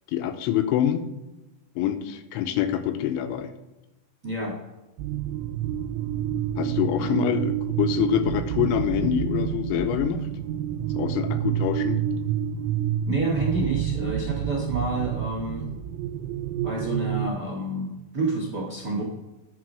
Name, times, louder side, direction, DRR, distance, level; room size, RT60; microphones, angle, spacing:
voice 1, 0.1-1.1 1.8-3.5 6.6-10.3 10.9-12.0, left 10 dB, 85° left, 9 dB, 2.8 m, -25 dB
voice 2, 4.2-4.5 7.0-7.2 13.1-15.7 16.6-19.0, right 2 dB, 75° right, -2 dB, 0.9 m, -28 dB
sound 1, 5.0-17.3, right 10 dB, 90° right, 3.1 m, -28 dB
11.0 x 4.0 x 6.2 m, 1.0 s
omnidirectional pair, 5.6 m